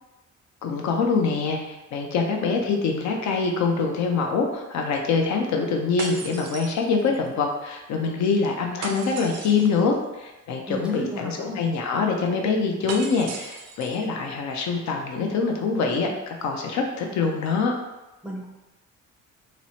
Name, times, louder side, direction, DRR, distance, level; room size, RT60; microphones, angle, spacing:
voice 1, 0.6-17.7, left 4 dB, 70° left, 2 dB, 0.5 m, -24 dB
sound 1, 6.0-7.3 8.8-9.8 12.9-14.1, right 4 dB, 60° right, 0.4 m, -37 dB
voice 2, 10.7-11.6 18.2-18.5, right 1 dB, 5° right, -2 dB, 0.5 m, -34 dB
2.9 x 2.0 x 2.7 m, 1.0 s
cardioid pair, 90°, 30 cm